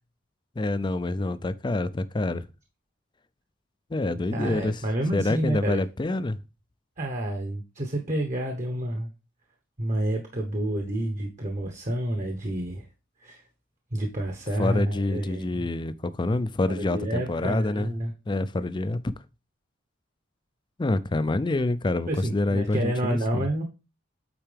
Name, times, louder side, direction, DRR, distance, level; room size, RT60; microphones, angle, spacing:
voice 1, 0.6-2.5 3.9-4.8 5.1-6.4 14.6-17.9 18.3-19.0 20.8-23.5, left 2 dB, 25° left, 0.4 m, -27 dB
voice 2, 4.3-5.8 7.0-9.1 9.8-12.9 13.2-13.4 13.9-15.6 16.7-18.1 22.1-23.6, right 1 dB, 40° right, 1.1 m, -29 dB
8.8 x 4.6 x 3.4 m
head